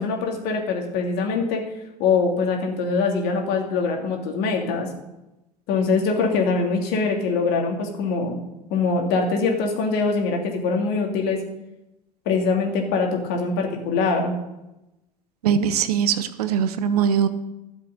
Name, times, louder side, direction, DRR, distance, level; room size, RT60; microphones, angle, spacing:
voice 1, 0.0-1.6 2.0-4.9 5.7-8.4 8.7-11.4 12.2-14.4, left 4 dB, 50° left, 2 dB, 2.9 m, -23 dB
voice 2, 15.4-17.3, right 8 dB, 70° right, 12 dB, 1.0 m, -21 dB
12.5 x 7.5 x 6.7 m, 0.95 s
figure-of-eight pair, 80°, 20 cm